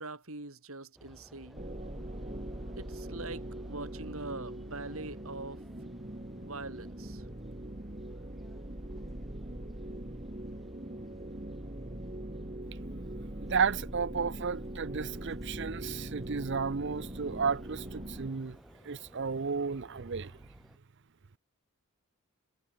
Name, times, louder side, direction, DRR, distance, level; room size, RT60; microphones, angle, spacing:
voice 1, 0.0-1.7 2.8-5.6 6.4-7.2, right 3 dB, 70° right, 3.6 m, -43 dB
sound 1, 1.0-20.8, equal, ahead, 2.9 m, -57 dB
sound 2, 1.6-18.3, right 1 dB, 30° right, 1.8 m, -42 dB
voice 2, 13.4-18.6 18.8-20.3, right 5 dB, 55° right, 0.6 m, -33 dB
head